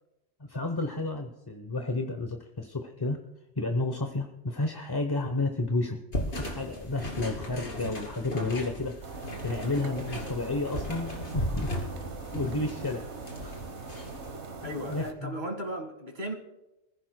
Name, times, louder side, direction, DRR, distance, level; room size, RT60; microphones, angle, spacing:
voice 1, 0.5-3.2 3.6-6.0 6.3-12.0 12.3-13.0 13.4-13.6 14.6-15.4, left 2 dB, 25° left, 5 dB, 0.7 m, -32 dB
sound 1, 6.1-14.3, left 1 dB, 60° left, 2.9 m, -36 dB
sound 2, 9.0-15.1, right 4 dB, 75° right, 1.5 m, -41 dB
voice 2, 14.6-16.3, equal, 40° right, 3 dB, 2.0 m, -36 dB
25.5 x 15.0 x 2.2 m, 0.98 s
omnidirectional pair, 1.2 m